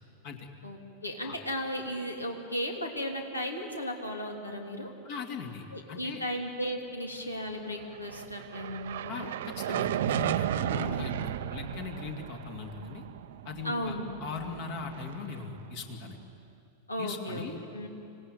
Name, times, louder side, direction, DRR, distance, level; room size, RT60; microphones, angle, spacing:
voice 1, 0.6-4.9 5.7-9.3 10.8-11.1 13.6-14.1 16.9-17.4 17.7-17.9, equal, 80° left, 2 dB, 2.9 m, -35 dB
voice 2, 5.0-6.2 9.1-13.0 13.4-16.2 17.0-17.6, left 6 dB, 50° left, 3 dB, 2.5 m, -40 dB
sound 1, 7.8-16.2, right 11 dB, 55° right, 0.6 m, -35 dB
26.0 x 18.0 x 9.2 m, 2.7 s
figure-of-eight pair, 90°, 0 cm